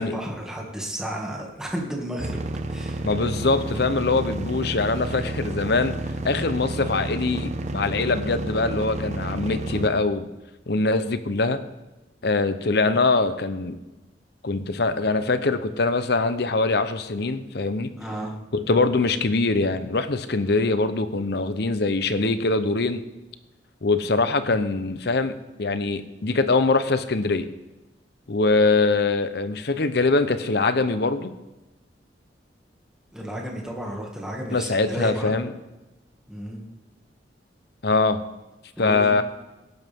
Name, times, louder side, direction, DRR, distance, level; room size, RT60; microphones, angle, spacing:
voice 1, 0.0-2.4 2.7-3.1 18.0-18.4 33.1-35.3 36.3-36.6 38.8-39.1, equal, 5° right, -1 dB, 2.2 m, -32 dB
sound 1, 2.2-9.9, right 1 dB, 40° right, 0.8 m, -30 dB
voice 2, 3.0-6.0 6.2-10.3 10.7-11.6 12.2-13.8 14.4-17.9 18.5-23.0 23.8-25.3 25.6-27.5 28.3-31.3 34.5-35.5 37.8-38.2 38.8-39.2, left 3 dB, 60° left, 11 dB, 0.8 m, -23 dB
16.5 x 11.5 x 3.7 m, 1.1 s
head